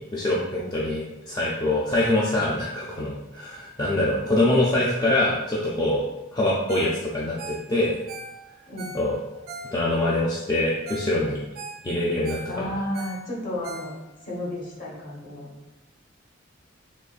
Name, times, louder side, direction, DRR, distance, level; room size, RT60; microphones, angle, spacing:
voice 1, 0.1-6.0 6.3-8.0 8.9-9.2 9.7-11.4 11.8-12.7, left 1 dB, 20° left, -5 dB, 0.4 m, -24 dB
Ringtone, 6.7-7.0 7.2-10.1 10.6-10.7 10.9-11.1 11.4-14.3 14.7-14.8, right 2 dB, 50° right, 0.4 m, -40 dB
voice 2, 12.5-13.9 14.2-15.5, left 1 dB, 45° left, -4 dB, 1.1 m, -32 dB
3.9 x 3.0 x 2.4 m, 0.98 s
head